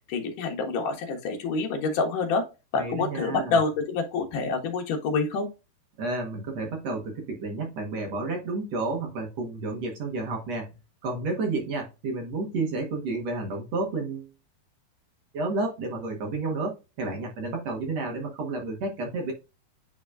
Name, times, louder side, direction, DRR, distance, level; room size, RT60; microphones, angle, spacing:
voice 1, 0.1-2.4 2.7-5.5, left 4 dB, 65° left, 2.7 m, -27 dB
voice 2, 2.7-3.6 6.0-10.7 11.0-14.3 15.3-19.3, right 3 dB, 60° right, 2.0 m, -31 dB
10.0 x 4.0 x 2.4 m
omnidirectional pair, 4.5 m